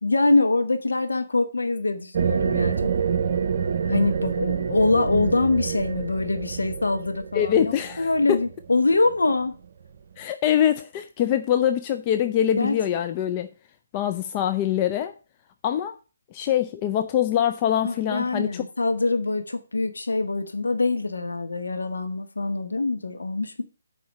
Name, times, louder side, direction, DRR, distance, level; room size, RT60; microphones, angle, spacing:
voice 1, 0.0-2.9 3.8-9.5 12.6-12.8 17.8-23.6, left 3 dB, 70° left, 1.1 m, -24 dB
sound 1, 2.1-9.4, right 7 dB, 45° right, 0.7 m, -27 dB
voice 2, 7.3-8.4 10.2-13.5 13.9-15.1 15.6-15.9 16.3-18.6, left 10 dB, 25° left, 0.5 m, -24 dB
7.7 x 5.0 x 6.6 m
figure-of-eight pair, 140°, 0 cm